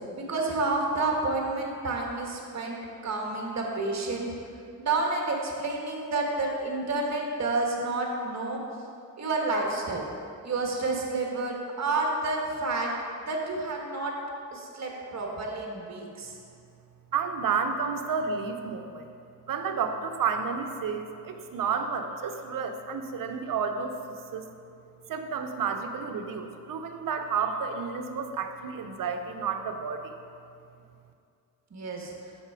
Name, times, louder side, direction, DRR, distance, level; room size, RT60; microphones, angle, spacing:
voice 1, 0.3-2.8 3.0-4.3 4.8-8.6 9.2-10.0 10.4-12.9 13.2-14.1 14.5-16.3 31.7-32.1, right 3 dB, 55° right, 0 dB, 1.6 m, -29 dB
voice 2, 17.1-19.1 19.5-24.0 24.3-24.4 25.1-30.1, right 6 dB, 80° right, 6 dB, 0.8 m, -31 dB
8.1 x 6.7 x 4.9 m, 2.4 s
cardioid pair, 90°, 33 cm